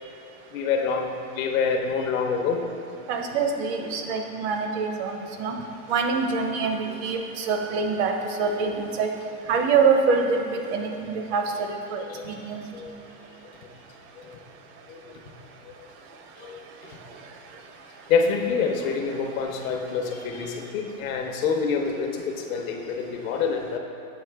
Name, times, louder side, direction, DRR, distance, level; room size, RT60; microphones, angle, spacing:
voice 1, 0.5-2.6 12.1-12.3 12.7-12.9 14.2-14.4 14.9-15.0 15.6-15.7 16.4-16.6 18.1-23.8, left 5 dB, 70° left, 3 dB, 0.9 m, -26 dB
voice 2, 3.1-5.6 5.9-9.1 9.5-12.6, right 5 dB, 50° right, 4 dB, 0.7 m, -25 dB
7.7 x 4.5 x 3.4 m, 2.6 s
supercardioid pair, 135°, 43 cm